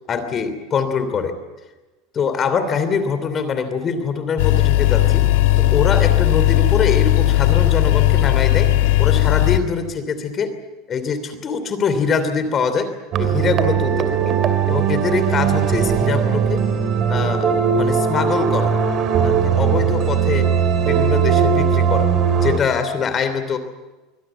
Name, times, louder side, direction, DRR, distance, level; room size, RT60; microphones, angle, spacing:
voice 1, 0.1-1.4 2.1-5.3 5.6-8.7 9.0-10.5 10.9-12.9 13.2-14.4 14.7-16.7 17.1-18.8 19.2-22.1 22.4-23.6, left 5 dB, 30° left, 10 dB, 3.0 m, -23 dB
sound 1, 4.4-9.6, left 15 dB, 80° left, 1.8 m, -16 dB
sound 2, 13.1-22.6, right 7 dB, 40° right, 2.4 m, -19 dB
24.0 x 17.5 x 9.0 m, 1.1 s
supercardioid pair, 145°, 0 cm